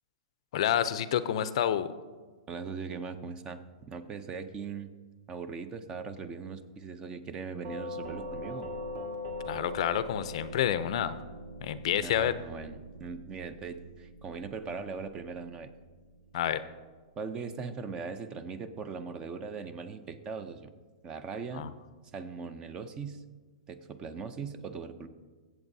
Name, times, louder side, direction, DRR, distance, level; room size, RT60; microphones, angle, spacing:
voice 1, 0.5-1.9 9.5-11.2 11.6-12.3 16.3-16.6 21.5-21.7, left 10 dB, 60° left, 14 dB, 0.5 m, -28 dB
voice 2, 2.5-4.9 5.3-8.7 11.9-15.7 17.2-20.7 21.0-21.7 22.1-23.2 23.7-25.1, right 5 dB, 20° right, 12 dB, 0.5 m, -40 dB
Doorbell, 7.6-16.5, left 1 dB, 50° right, 1.8 m, -42 dB
22.0 x 7.9 x 2.7 m, 1.4 s
hypercardioid pair, 155°, 4 cm